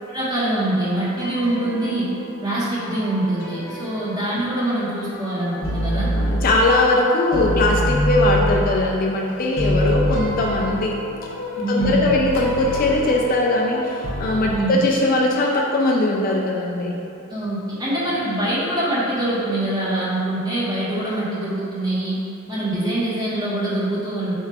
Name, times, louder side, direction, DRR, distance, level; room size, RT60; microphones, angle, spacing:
voice 1, 0.1-2.1 2.4-6.1 11.6-12.2 14.5-14.9 17.3-22.2 22.5-24.3, right 1 dB, 20° right, -9 dB, 1.0 m, -24 dB
sound 1, 1.2-2.4 2.8-4.7 5.1-7.0 7.3-14.5, left 1 dB, 60° left, 0.7 m, -26 dB
voice 2, 6.1-11.0 11.7-17.0, left 2 dB, 40° left, -1 dB, 0.3 m, -20 dB
4.5 x 2.4 x 4.5 m, 2.8 s
head